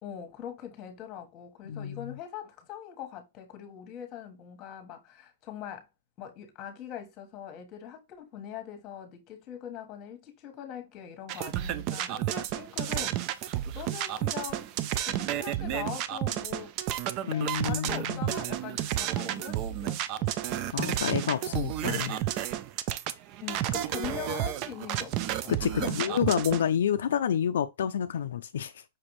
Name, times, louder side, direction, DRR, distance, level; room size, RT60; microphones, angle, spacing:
voice 1, 0.0-5.9 6.2-14.7 15.1-16.7 17.3-21.6 23.4-26.2, left 9 dB, 30° left, 1.3 m, -42 dB
voice 2, 1.6-2.2 17.3-18.3 20.7-22.2 25.5-28.8, left 9 dB, 75° left, 0.3 m, -29 dB
sound 1, 11.3-26.7, right 12 dB, 35° right, 0.4 m, -31 dB
5.8 x 2.6 x 3.1 m
hypercardioid pair, 145°, 0 cm